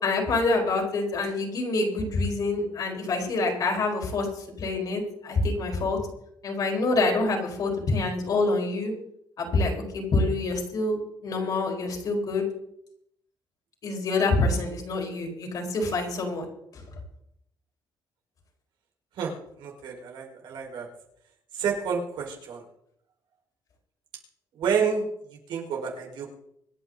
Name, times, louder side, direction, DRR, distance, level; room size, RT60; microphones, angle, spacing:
voice 1, 0.0-4.3 4.6-6.0 6.4-8.9 9.4-11.0 11.2-12.5 13.8-16.5, left 3 dB, 50° left, 1 dB, 4.3 m, -26 dB
voice 2, 19.6-20.9 21.6-22.6 24.6-25.0 25.5-26.3, right 6 dB, 75° right, 0 dB, 5.0 m, -29 dB
25.5 x 9.7 x 4.0 m, 0.75 s
cardioid pair, 135°, 8 cm